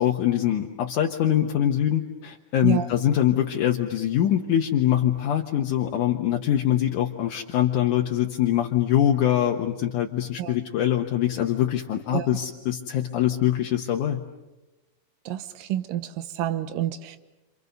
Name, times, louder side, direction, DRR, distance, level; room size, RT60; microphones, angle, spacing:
voice 1, 0.0-14.2, left 11 dB, 70° left, 1 dB, 2.7 m, -23 dB
voice 2, 15.3-17.2, right 12 dB, 85° right, 11 dB, 2.8 m, -28 dB
30.0 x 27.5 x 6.8 m, 1.1 s
omnidirectional pair, 3.8 m